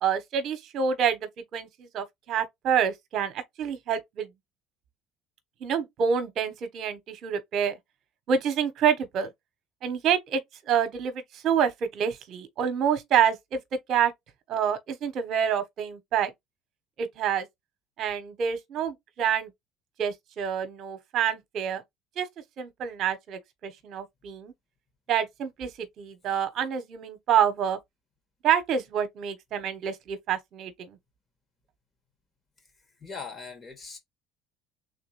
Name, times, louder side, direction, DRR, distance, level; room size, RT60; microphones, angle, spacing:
voice 1, 0.0-4.3 5.6-7.8 8.3-9.3 9.8-10.4 10.7-13.6 13.9-14.1 14.5-16.3 17.0-17.5 18.0-19.5 20.0-21.8 22.2-22.3 22.6-24.5 25.1-27.8 28.4-31.0, right 8 dB, 55° right, 1.1 m, -27 dB
voice 2, 33.0-34.0, left 5 dB, 30° left, 2.2 m, -40 dB
3.7 x 3.3 x 3.2 m
supercardioid pair, 80°, 0 cm